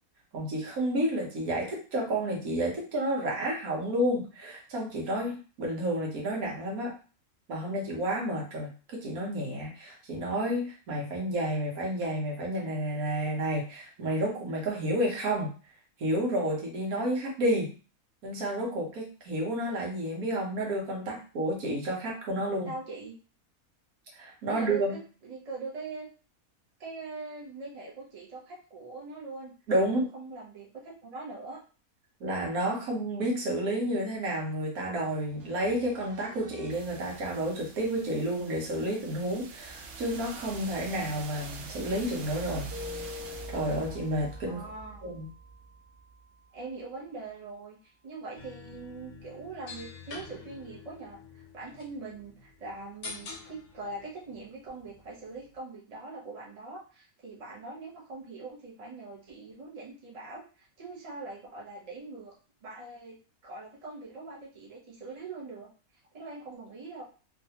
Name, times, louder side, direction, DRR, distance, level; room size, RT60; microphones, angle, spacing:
voice 1, 0.3-6.9 7.5-15.5 16.0-17.7 18.2-22.7 24.1-25.0 29.7-30.1 32.2-42.7 43.5-44.6 45.0-45.3, right 1 dB, 80° right, -1 dB, 1.5 m, -30 dB
voice 2, 22.7-23.1 24.5-26.1 26.8-29.5 29.8-31.6 44.4-45.0 46.5-62.3 62.6-63.2 63.4-65.7 66.1-67.0, right 3 dB, 30° right, -4 dB, 0.9 m, -42 dB
sound 1, 35.0-46.8, right 5 dB, 65° right, 0.9 m, -45 dB
Keyboard (musical), 42.7-44.7, left 7 dB, 20° left, 0.8 m, -43 dB
sound 2, 48.4-55.6, left 4 dB, 60° left, 1.0 m, -47 dB
3.3 x 2.5 x 2.8 m, 0.36 s
omnidirectional pair, 1.5 m